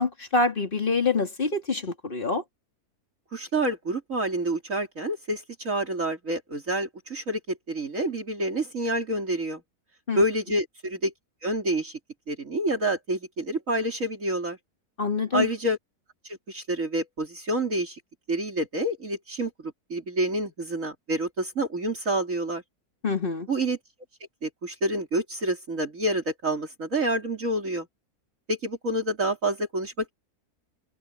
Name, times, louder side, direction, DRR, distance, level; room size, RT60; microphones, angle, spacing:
voice 1, 0.0-2.4 10.1-10.2 15.0-15.5 23.0-23.5, left 4 dB, 35° left, 2.9 m, -26 dB
voice 2, 3.3-9.6 10.2-11.1 11.4-12.0 12.3-14.6 15.3-15.8 16.2-18.0 18.3-22.6 23.5-23.8 24.4-27.9 28.5-30.1, right 1 dB, 55° right, 3.7 m, -28 dB
omnidirectional pair, 1.6 m